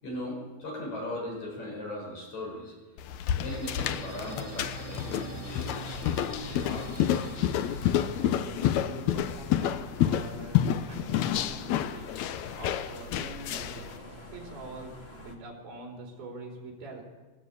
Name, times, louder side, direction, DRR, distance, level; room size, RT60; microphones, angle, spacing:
voice 1, 0.0-7.0, left 1 dB, 50° left, -1 dB, 7.7 m, -39 dB
sound 1, 3.0-13.9, left 11 dB, 85° left, 1.6 m, -29 dB
sound 2, 3.4-10.0, right 10 dB, 55° right, 2.4 m, -45 dB
sound 3, 5.8-15.3, left 1 dB, 20° left, 1.9 m, -46 dB
voice 2, 8.2-10.6 10.9-12.1 12.5-13.9 14.3-17.0, right 2 dB, 75° right, 0 dB, 6.1 m, -44 dB
21.5 x 18.5 x 8.5 m, 1.2 s
omnidirectional pair, 4.3 m